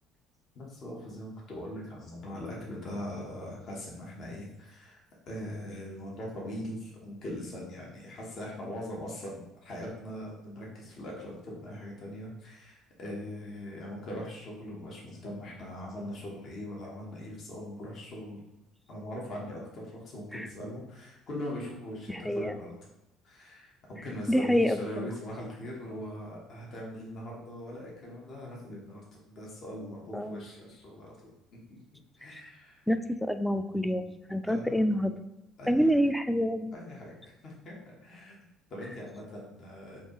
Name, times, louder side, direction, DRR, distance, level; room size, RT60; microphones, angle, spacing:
voice 1, 0.5-18.4 18.9-22.7 23.2-31.3 31.7-31.8 32.2-32.8 34.4-34.8 35.6-36.0 36.7-38.4 38.7-40.0, left 1 dB, 50° left, -3 dB, 1.2 m, -41 dB
voice 2, 22.1-22.5 24.3-24.8 30.1-30.4 32.3-32.4 32.9-35.1 35.7-36.8, equal, 5° left, 10 dB, 0.3 m, -27 dB
4.3 x 2.8 x 3.0 m, 0.92 s
hypercardioid pair, 55°, 0 cm